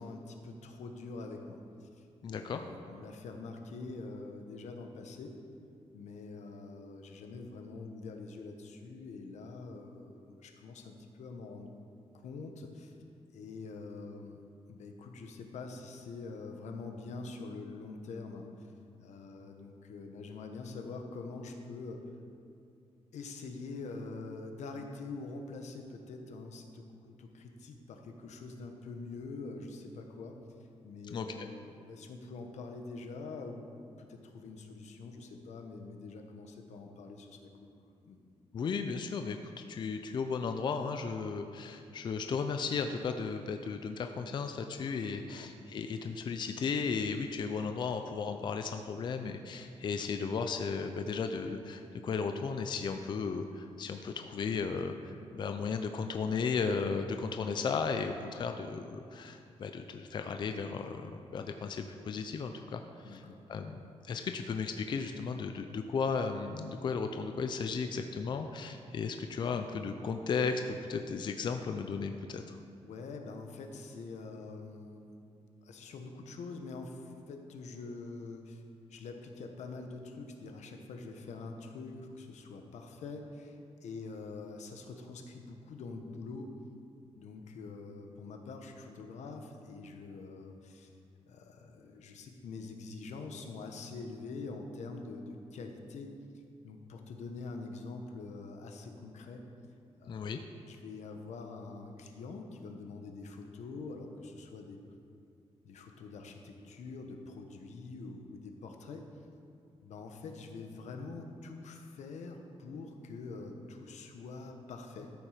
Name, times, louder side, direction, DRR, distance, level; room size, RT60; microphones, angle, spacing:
voice 1, 0.0-5.3 5.9-11.7 12.2-13.0 13.3-14.4 14.7-18.5 19.0-22.0 23.1-30.4 30.8-33.7 34.0-37.7 38.1-38.2 45.4-45.5 63.0-63.4 72.8-75.1 75.6-78.6 78.9-86.5 87.1-90.9 91.3-96.1 96.6-99.4 100.0-104.8 105.6-109.0 109.8-115.1, left 3 dB, 90° left, 4 dB, 1.2 m, -45 dB
voice 2, 2.2-2.6 31.1-31.5 38.5-63.2 63.5-63.8 64.0-72.6 100.1-100.4, left 5 dB, 40° left, 6 dB, 0.5 m, -35 dB
13.0 x 7.4 x 5.0 m, 2.5 s
wide cardioid pair, 175°, 12 cm